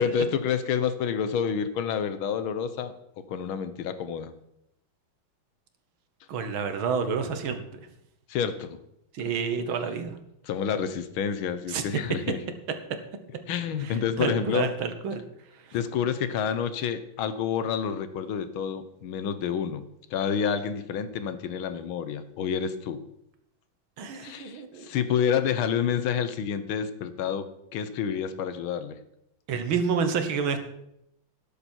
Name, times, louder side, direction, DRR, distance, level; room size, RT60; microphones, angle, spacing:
voice 1, 0.0-2.9 3.3-4.3 8.3-8.8 10.4-12.4 13.5-14.7 15.7-23.0 24.2-27.5 27.7-29.0, left 7 dB, 80° left, 12 dB, 1.7 m, -28 dB
voice 2, 6.3-7.6 9.1-10.1 11.7-11.8 13.8-15.2 24.0-24.9 29.5-30.6, right 6 dB, 75° right, 8 dB, 2.1 m, -29 dB
12.5 x 11.0 x 4.5 m, 0.80 s
omnidirectional pair, 2.2 m